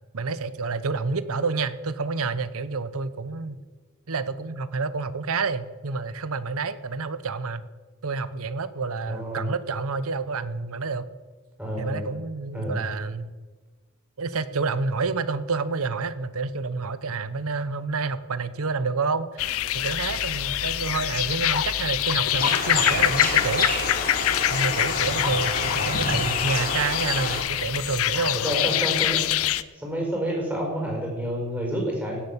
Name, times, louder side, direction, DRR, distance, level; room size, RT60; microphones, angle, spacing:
voice 1, 0.1-3.6 4.1-7.7 8.0-11.1 11.8-13.3 14.2-23.7 24.5-28.4, right 4 dB, 65° right, 14 dB, 0.8 m, -29 dB
voice 2, 9.0-9.5 11.6-12.1 12.5-12.8 28.3-29.3 29.7-32.2, equal, 5° right, -2 dB, 5.0 m, -29 dB
sound 1, 19.4-29.6, left 12 dB, 70° left, 0.6 m, -25 dB
sound 2, 22.4-27.4, left 3 dB, 40° left, 3.0 m, -28 dB
17.0 x 8.0 x 7.3 m, 1.3 s
head